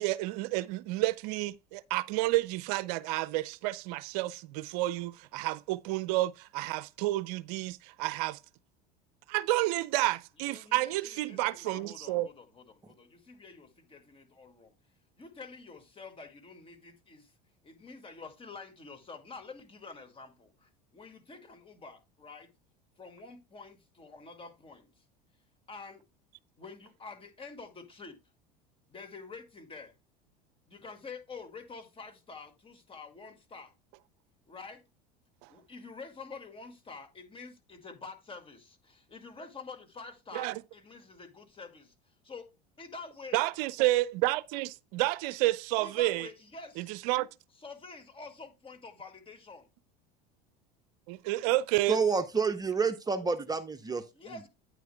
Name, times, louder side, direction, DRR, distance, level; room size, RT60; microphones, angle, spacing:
voice 1, 0.0-8.4 9.3-12.3 40.3-40.6 43.3-46.3 46.8-47.3 51.1-52.0, right 18 dB, 70° right, 0.5 m, -30 dB
voice 2, 10.4-14.7 15.2-17.3 17.6-22.5 23.0-25.0 25.7-26.0 26.6-28.2 28.9-29.9 30.7-33.7 34.5-34.8 35.5-42.5 42.8-43.4 45.8-46.9 47.6-49.7 54.1-54.5, left 4 dB, 25° left, 2.0 m, -48 dB
voice 3, 51.9-54.0, right 5 dB, 20° right, 0.7 m, -29 dB
9.4 x 9.3 x 2.2 m
hypercardioid pair, 85°, 21 cm